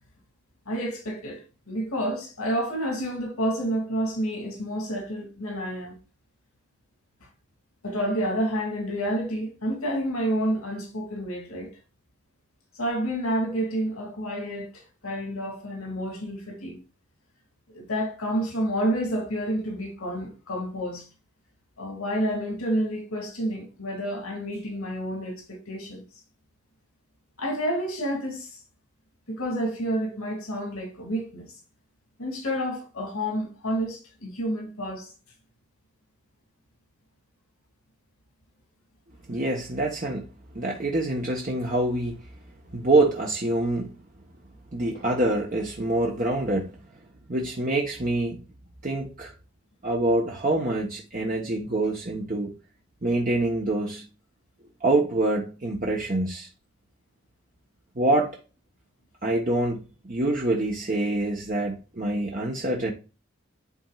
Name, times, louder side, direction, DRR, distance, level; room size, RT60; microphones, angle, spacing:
voice 1, 0.7-6.0 7.8-11.7 12.8-16.8 17.7-21.1 21.8-26.0 27.4-28.6 29.3-31.5 32.2-35.1 42.7-42.8, equal, 85° left, 2.4 m, -29 dB
voice 2, 39.3-42.2 42.7-43.9 44.7-46.7 47.3-48.4 48.8-49.3 49.8-52.5 53.0-54.1 54.8-56.5 58.0-58.4 59.2-62.9, right 2 dB, 40° right, 1.1 m, -26 dB
11.0 x 4.4 x 2.4 m
head